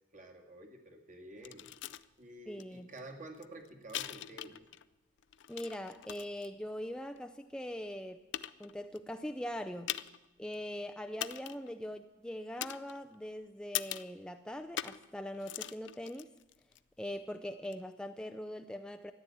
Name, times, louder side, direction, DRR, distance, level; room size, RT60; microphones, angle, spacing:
voice 1, 0.1-1.8 2.2-4.6, right 1 dB, 45° right, 2 dB, 2.1 m, -50 dB
sound 1, 1.4-2.1 2.6-2.7 3.0-4.8 5.2-6.5 7.2-7.3 7.9-8.0 8.3-9.0 9.9-10.3 10.5-10.6 11.2-11.7 12.6-13.3 13.7-14.2 14.8-15.1 15.3-16.8 17.6-17.7, left 12 dB, 75° left, 0.5 m, -41 dB
voice 2, 2.5-2.9 5.5-8.2 8.6-9.9 10.4-16.3 17.0-19.1, equal, 5° left, 6 dB, 0.4 m, -42 dB
13.5 x 11.0 x 8.4 m, 1.0 s
head